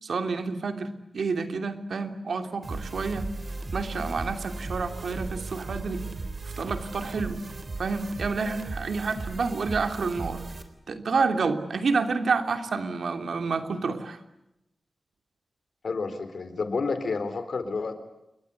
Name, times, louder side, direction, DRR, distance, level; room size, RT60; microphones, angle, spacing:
voice 1, 0.0-0.9 1.1-3.3 3.7-6.0 6.4-7.4 7.8-10.4 10.9-14.2, right 4 dB, 80° right, 7 dB, 3.0 m, -29 dB
sound 1, 2.6-10.6, right 3 dB, 45° right, 3.7 m, -36 dB
voice 2, 15.8-17.9, left 4 dB, 65° left, 10 dB, 3.9 m, -30 dB
29.5 x 22.5 x 8.4 m, 0.87 s
wide cardioid pair, 120°, 0 cm